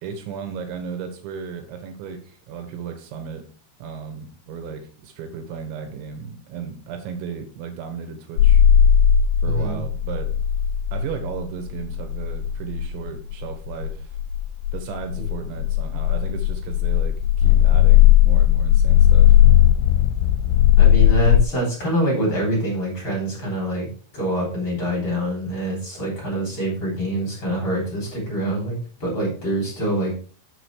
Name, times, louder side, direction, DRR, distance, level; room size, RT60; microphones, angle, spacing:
voice 1, 0.0-3.5 3.8-8.6 9.4-10.3 10.9-14.2 14.7-19.4, right 6 dB, 80° right, 6 dB, 3.6 m, -35 dB
sound 1, 8.4-21.4, left 11 dB, 85° left, 2.9 m, -17 dB
voice 2, 9.5-9.8 20.8-23.9 24.1-30.1, right 1 dB, 30° left, -3 dB, 3.7 m, -25 dB
7.1 x 7.0 x 4.7 m, 0.41 s
omnidirectional pair, 5.2 m